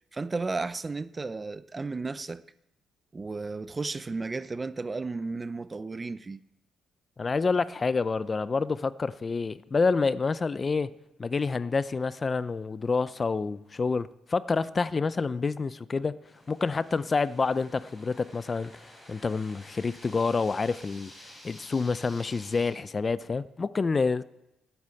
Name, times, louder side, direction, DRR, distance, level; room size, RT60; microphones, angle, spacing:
voice 1, 0.0-2.4 3.1-6.4, right 3 dB, 25° right, 0.6 m, -34 dB
voice 2, 7.2-10.9 11.2-16.2 16.5-18.7 19.1-21.1 21.4-24.2, left 4 dB, 30° left, 0.5 m, -28 dB
sound 1, 16.3-22.7, left 1 dB, 5° left, 7.0 m, -51 dB
12.0 x 8.9 x 8.4 m
cardioid pair, 90°, 0 cm